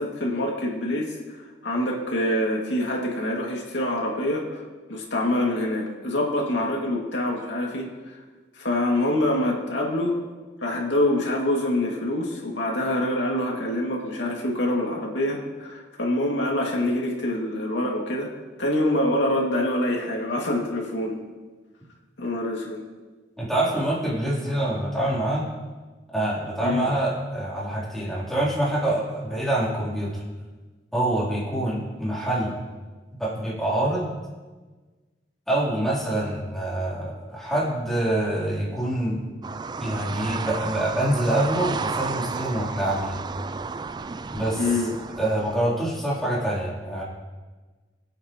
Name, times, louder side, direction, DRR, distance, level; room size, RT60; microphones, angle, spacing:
voice 1, 0.0-4.6 4.9-7.9 8.5-10.2 10.6-18.3 18.6-21.2 22.2-22.8 26.6-26.9 44.6-44.9, left 1 dB, 80° left, -1 dB, 2.4 m, -25 dB
voice 2, 23.4-25.5 26.1-30.2 30.9-32.5 33.2-34.1 35.5-39.2 39.8-43.2 44.3-44.8 45.2-47.0, right 1 dB, ahead, -7 dB, 3.7 m, -26 dB
sound 1, 39.4-45.6, right 4 dB, 25° right, 0.3 m, -32 dB
21.0 x 8.6 x 3.1 m, 1.3 s
head